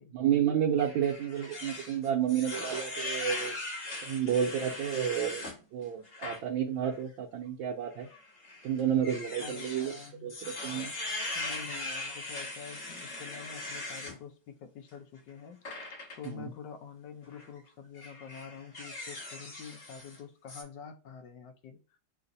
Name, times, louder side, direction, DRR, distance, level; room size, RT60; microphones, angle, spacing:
voice 1, 0.1-3.5 4.0-8.1 8.6-9.9 10.2-10.9 16.2-16.5, right 9 dB, 80° right, 1.4 m, -30 dB
sound 1, 0.8-5.5 6.0-6.4 6.8-7.0 8.0-14.2 15.6-16.3 17.2-17.5 17.9-20.2 20.5-20.6, left 2 dB, 55° left, 2.4 m, -40 dB
voice 2, 9.4-10.3 11.3-15.6 16.2-21.8, left 7 dB, 70° left, 1.3 m, -47 dB
6.9 x 2.5 x 2.6 m
omnidirectional pair, 2.1 m